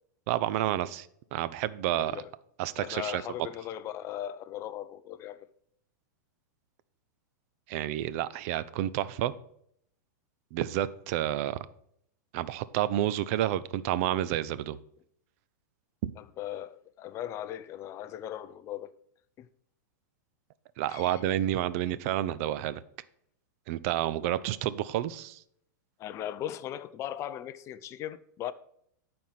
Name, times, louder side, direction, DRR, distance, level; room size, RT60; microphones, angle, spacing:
voice 1, 0.3-2.2 2.6-3.2 7.7-9.3 10.5-11.6 12.3-14.8 16.0-16.1 20.8-22.8 23.7-25.4, right 13 dB, 50° right, 0.5 m, -30 dB
voice 2, 2.0-2.3 2.8-5.5 16.2-18.9 19.4-19.5 20.9-21.2 26.0-28.5, left 11 dB, 30° left, 0.5 m, -38 dB
10.5 x 4.4 x 5.8 m
hypercardioid pair, 135°, 10 cm